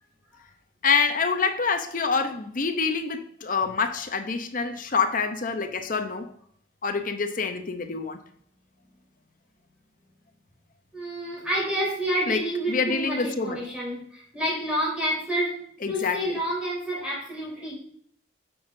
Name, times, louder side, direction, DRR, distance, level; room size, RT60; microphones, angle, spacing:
voice 1, 0.8-6.3 6.8-8.2 12.3-13.6 15.8-16.4, left 5 dB, 40° left, 7 dB, 0.8 m, -26 dB
voice 2, 10.9-15.6 15.9-17.8, right 1 dB, 5° right, -6 dB, 3.7 m, -29 dB
9.1 x 7.1 x 2.7 m, 0.62 s
head